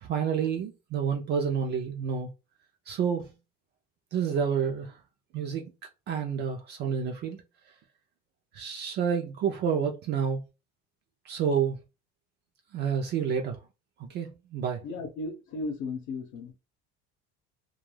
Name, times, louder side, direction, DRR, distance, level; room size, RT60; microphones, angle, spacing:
voice 1, 0.0-2.3 2.9-3.3 4.1-5.0 5.3-5.7 6.1-7.4 8.5-10.4 11.2-11.8 12.7-13.6 14.1-14.8, right 7 dB, 35° right, 0.4 m, -29 dB
voice 2, 14.8-16.5, left 3 dB, 70° left, 0.8 m, -35 dB
2.3 x 2.2 x 3.1 m
cardioid pair, 160°, 29 cm